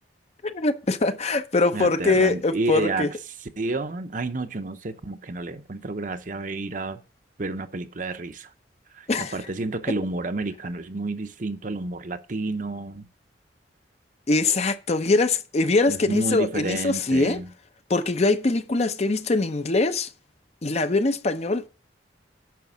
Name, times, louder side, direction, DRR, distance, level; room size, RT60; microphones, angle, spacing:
voice 1, 0.4-3.1 9.1-9.3 14.3-17.4 17.9-20.1 20.6-21.7, left 3 dB, 40° left, 0.7 m, -22 dB
voice 2, 1.7-3.1 3.4-7.0 7.4-8.5 8.9-13.0 15.9-17.5, right 2 dB, 45° right, 0.8 m, -30 dB
9.4 x 5.9 x 7.2 m
head